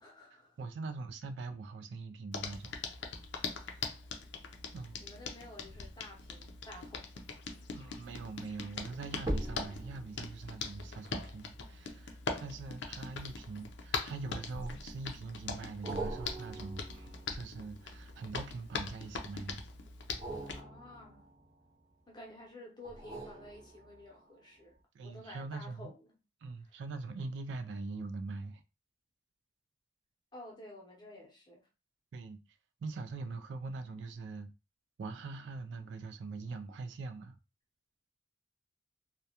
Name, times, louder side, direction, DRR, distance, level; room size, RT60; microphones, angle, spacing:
voice 1, 0.0-0.6 3.3-3.9 5.0-7.0 20.5-21.3 22.1-24.8 25.0-26.0 30.3-31.6, left 1 dB, 20° left, 0.7 m, -51 dB
voice 2, 0.6-2.8 4.7-5.0 7.7-19.6 24.9-25.9 26.4-28.6 32.1-32.4 32.8-34.5 35.0-37.4, right 3 dB, 70° right, 0.3 m, -43 dB
Hands, 2.3-20.6, left 4 dB, 70° left, 0.4 m, -42 dB
sound 1, 9.2-13.8 14.5-15.1 15.8-18.8 20.0-22.1 22.8-24.3 24.7-24.8, right 1 dB, 20° right, 0.7 m, -44 dB
2.3 x 2.1 x 2.8 m
head